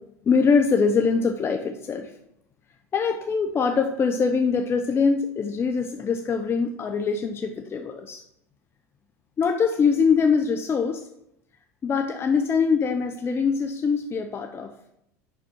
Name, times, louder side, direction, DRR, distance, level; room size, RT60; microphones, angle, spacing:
voice 1, 0.2-2.1 2.9-8.2 9.4-11.0 11.8-14.7, left 5 dB, 30° left, 5 dB, 0.8 m, -23 dB
7.0 x 5.9 x 5.7 m, 0.78 s
hypercardioid pair, 85°, 8 cm